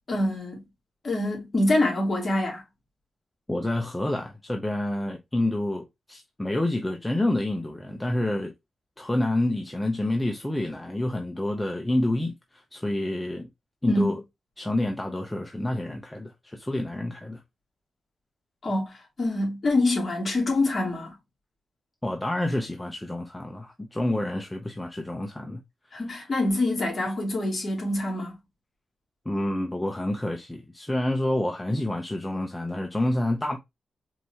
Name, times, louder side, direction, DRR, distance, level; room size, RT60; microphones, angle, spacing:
voice 1, 0.1-0.6 1.0-2.6 13.9-14.2 18.6-21.1 25.9-28.4, left 2 dB, 35° left, 2.5 m, -25 dB
voice 2, 3.5-8.5 9.0-13.5 13.8-14.2 14.6-17.4 22.0-25.6 29.3-33.6, left 1 dB, 10° left, 0.6 m, -28 dB
4.6 x 3.3 x 2.7 m
wide cardioid pair, 150°, 0 cm